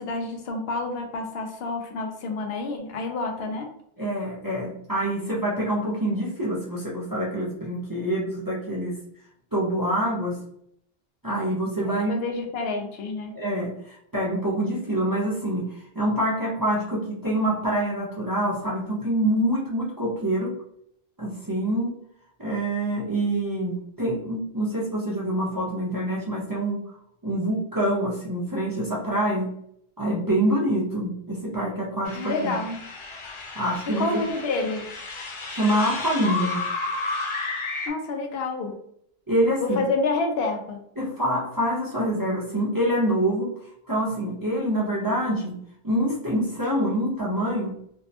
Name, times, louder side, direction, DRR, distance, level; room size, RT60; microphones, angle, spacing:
voice 1, 0.0-3.7 11.8-13.3 32.1-32.8 34.0-34.9 37.9-38.7 39.6-40.8, left 3 dB, 75° left, 3 dB, 0.8 m, -28 dB
voice 2, 4.0-9.0 9.5-10.4 11.2-12.2 13.3-20.5 21.2-21.9 22.4-26.8 27.2-29.5 30.0-32.6 33.6-34.2 35.5-36.7 39.3-39.8 41.0-43.5 43.9-47.8, right 1 dB, 30° right, -6 dB, 0.4 m, -26 dB
sound 1, 32.1-37.9, left 3 dB, 45° left, 0.4 m, -32 dB
2.6 x 2.1 x 2.7 m, 0.71 s
omnidirectional pair, 1.1 m